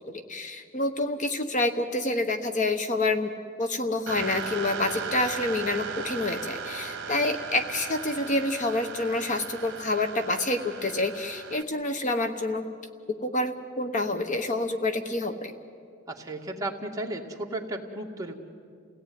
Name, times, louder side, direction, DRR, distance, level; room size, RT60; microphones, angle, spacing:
voice 1, 0.3-3.3 3.6-12.7 13.2-15.5, left 2 dB, 40° left, 7 dB, 1.1 m, -28 dB
sound 1, 4.1-11.6, right 5 dB, 55° right, 1.6 m, -37 dB
voice 2, 16.1-18.4, right 1 dB, 15° right, 0 dB, 2.0 m, -34 dB
29.5 x 17.5 x 9.5 m, 2.3 s
head